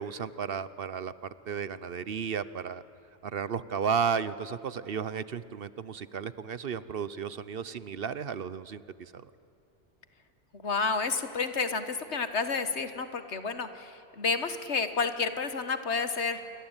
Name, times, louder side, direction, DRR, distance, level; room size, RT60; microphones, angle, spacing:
voice 1, 0.0-2.8 3.2-9.3, right 6 dB, 60° right, 16 dB, 1.0 m, -33 dB
voice 2, 10.5-16.4, left 4 dB, 75° left, 10 dB, 1.8 m, -30 dB
28.5 x 22.5 x 9.0 m, 2.9 s
omnidirectional pair, 1.2 m